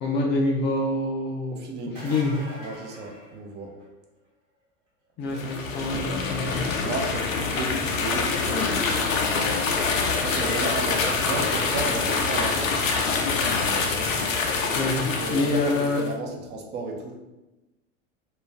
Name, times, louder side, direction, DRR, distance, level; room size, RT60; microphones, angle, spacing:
voice 1, 0.0-1.6 2.0-2.4 5.2-6.7 14.8-16.0, left 2 dB, 30° left, 0 dB, 0.4 m, -26 dB
voice 2, 1.5-2.1 2.6-3.7 6.7-9.4 10.2-12.7 15.2-17.2, right 3 dB, 25° right, 2 dB, 0.5 m, -34 dB
sound 1, 1.8-4.0 9.5-9.6 11.5-11.6, equal, 75° right, 1.2 m, -43 dB
sound 2, 5.3-16.1, left 4 dB, 85° left, 0.5 m, -25 dB
2.4 x 2.2 x 3.1 m, 1.0 s
hypercardioid pair, 85°, 39 cm